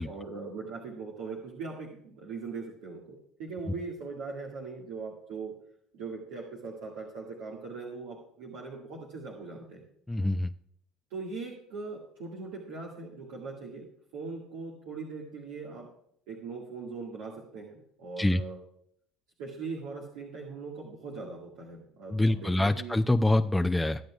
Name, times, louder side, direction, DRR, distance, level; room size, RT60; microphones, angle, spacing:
voice 1, 0.0-5.5 5.9-9.8 11.1-13.9 14.1-15.9 16.3-18.6 19.4-23.0, right 4 dB, 75° right, -3 dB, 1.8 m, -40 dB
voice 2, 10.1-10.5 18.2-18.4 22.1-24.0, left 1 dB, 10° left, 6 dB, 0.5 m, -25 dB
23.0 x 7.7 x 2.4 m, 0.68 s
hypercardioid pair, 70°, 0 cm